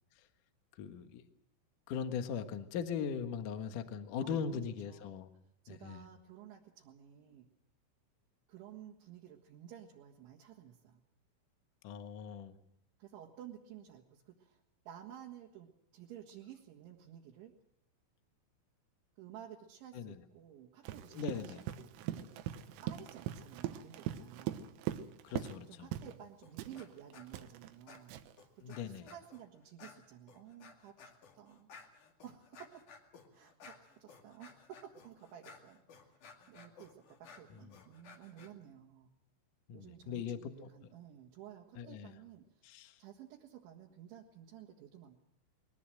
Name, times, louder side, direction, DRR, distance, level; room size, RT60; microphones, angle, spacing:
voice 1, 0.8-1.2 1.9-5.3 5.7-6.0 11.8-12.5 19.9-20.2 21.1-21.6 25.2-25.9 28.6-29.0 39.7-40.7 41.8-42.1 42.6-42.9, left 7 dB, 70° left, 8 dB, 1.9 m, -39 dB
voice 2, 4.2-5.2 5.6-7.5 8.5-11.0 13.0-14.6 14.9-15.7 15.9-17.6 19.2-22.5 22.8-24.7 25.7-28.1 28.7-31.7 32.2-32.8 33.3-36.2 36.5-39.1 39.7-42.5 43.0-45.2, right 10 dB, 70° right, -2 dB, 3.9 m, -53 dB
Run, 20.8-25.6 25.9-26.2 26.6-28.4, right 12 dB, 85° right, 3.8 m, -41 dB
sound 1, 26.4-26.9 27.1-27.5 27.9-29.4 29.8-38.5, left 5 dB, 50° left, 3.0 m, -57 dB
22.0 x 19.0 x 7.7 m, 0.76 s
omnidirectional pair, 5.9 m